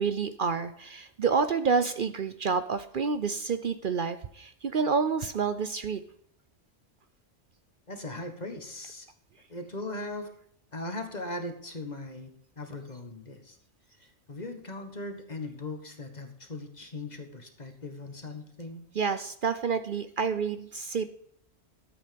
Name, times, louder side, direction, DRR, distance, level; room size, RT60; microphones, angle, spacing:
voice 1, 0.0-6.0 18.9-21.1, right 5 dB, 55° right, 11 dB, 0.8 m, -28 dB
voice 2, 7.9-9.1 9.5-10.3 10.7-12.3 12.6-13.6 14.0-18.8, left 2 dB, 40° left, 6 dB, 1.7 m, -39 dB
13.0 x 8.4 x 5.2 m, 0.67 s
omnidirectional pair, 1.1 m